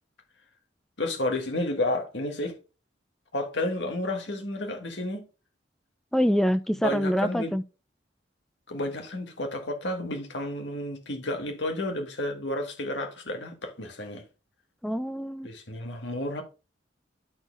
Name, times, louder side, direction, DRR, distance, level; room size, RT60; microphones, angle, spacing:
voice 1, 1.0-2.6 3.3-5.2 6.8-7.5 8.7-14.2 15.4-16.4, left 1 dB, 70° left, 1.6 m, -31 dB
voice 2, 6.1-7.6 14.8-15.5, equal, ahead, 0.3 m, -25 dB
12.0 x 4.3 x 3.4 m
head